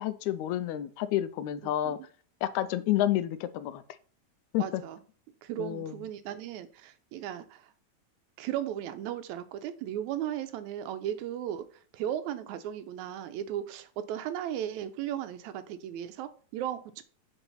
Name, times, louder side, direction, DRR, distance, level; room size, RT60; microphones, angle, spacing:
voice 1, 0.0-2.0 2.4-3.8 4.5-4.8 5.6-5.9, left 13 dB, 80° left, 14 dB, 1.9 m, -29 dB
voice 2, 4.6-5.0 5.4-7.7 8.4-11.7 11.9-17.0, right 11 dB, 90° right, 11 dB, 2.0 m, -36 dB
7.2 x 3.9 x 5.5 m, 0.42 s
omnidirectional pair, 3.3 m